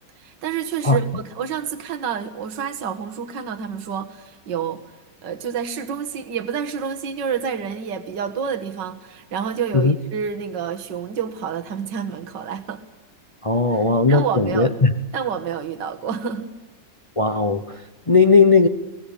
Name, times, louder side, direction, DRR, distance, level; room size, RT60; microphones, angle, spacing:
voice 1, 0.2-4.8 5.2-12.8 13.7-13.8 14.1-14.7 15.1-16.5, right 7 dB, 75° right, 7 dB, 2.1 m, -28 dB
voice 2, 13.4-14.9 17.2-17.8 18.1-18.7, left 4 dB, 25° left, 9 dB, 0.7 m, -17 dB
24.0 x 19.0 x 8.6 m, 1.2 s
omnidirectional pair, 2.0 m